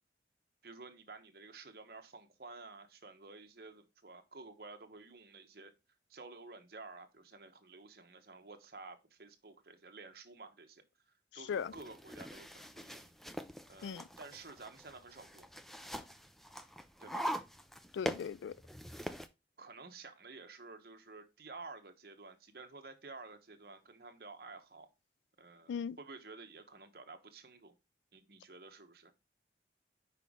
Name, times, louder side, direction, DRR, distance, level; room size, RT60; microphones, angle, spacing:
voice 1, 0.6-5.7 6.1-10.8 11.3-13.2 13.7-15.5 17.0-17.3 19.6-24.9 25.4-27.7 28.1-29.1, right 3 dB, 55° right, 1.0 m, -52 dB
voice 2, 11.3-11.7 13.8-14.1 17.9-18.6 25.7-26.0, left 7 dB, 90° left, 0.3 m, -38 dB
sound 1, 11.5-19.3, equal, ahead, 0.4 m, -43 dB
5.6 x 5.0 x 3.6 m
head